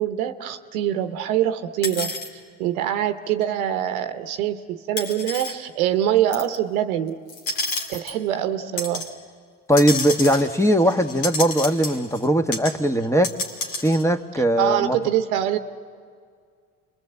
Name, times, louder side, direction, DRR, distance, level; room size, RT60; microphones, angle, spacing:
voice 1, 0.0-2.1 2.6-7.2 7.9-9.0 14.6-15.6, right 11 dB, 90° right, 9 dB, 1.1 m, -24 dB
sound 1, 1.8-2.3 3.4-3.5 5.0-5.5 6.3-6.5 7.3-8.2 8.8-9.1 9.7-12.3 12.5-12.7 13.0-14.0, left 3 dB, 85° left, 2.7 m, -30 dB
voice 2, 9.7-13.3 13.8-15.0, equal, 5° left, 7 dB, 1.4 m, -20 dB
29.0 x 22.5 x 8.1 m, 2.1 s
hypercardioid pair, 60°, 41 cm